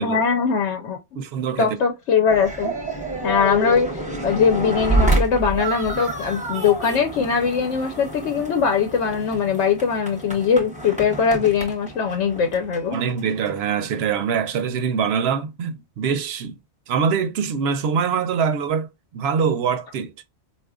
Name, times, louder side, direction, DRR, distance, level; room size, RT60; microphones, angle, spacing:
voice 1, 0.0-1.0 1.6-2.7 3.2-3.9 4.2-13.0, left 6 dB, 85° left, 1.0 m, -21 dB
voice 2, 1.1-1.8 12.9-16.6 16.9-20.1, right 6 dB, 65° right, 0.8 m, -24 dB
sound 1, 2.3-13.6, right 2 dB, 10° right, 0.6 m, -28 dB
4.2 x 2.4 x 2.3 m
omnidirectional pair, 1.2 m